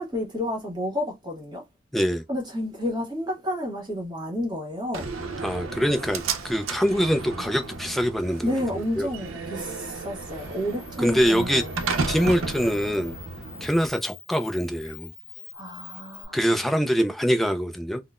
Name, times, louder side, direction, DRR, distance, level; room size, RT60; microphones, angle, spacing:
voice 1, 0.0-1.6 2.3-5.1 8.4-11.7 15.5-16.7, left 1 dB, 20° right, 1.3 m, -30 dB
voice 2, 1.9-2.2 5.4-9.1 11.0-11.6 12.1-13.2 13.6-15.1 16.3-18.0, equal, ahead, 0.3 m, -24 dB
Slam, 4.9-13.9, right 4 dB, 80° right, 0.6 m, -33 dB
Camera, 9.3-16.3, left 8 dB, 60° left, 0.9 m, -47 dB
3.7 x 2.1 x 2.3 m
head